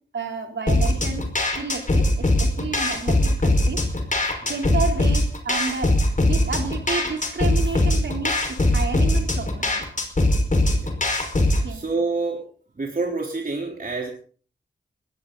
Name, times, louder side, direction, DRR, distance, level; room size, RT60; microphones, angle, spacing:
voice 1, 0.1-1.3 1.6-3.9 4.5-6.0 6.2-9.9 11.6-11.9, right 4 dB, 70° right, 4 dB, 3.5 m, -31 dB
sound 1, 0.7-11.7, left 1 dB, 40° left, 5.0 m, -21 dB
voice 2, 11.7-12.4 12.8-14.1, right 3 dB, 45° right, 0 dB, 3.6 m, -27 dB
20.5 x 17.0 x 4.0 m, 0.42 s
cardioid pair, 60°, 19 cm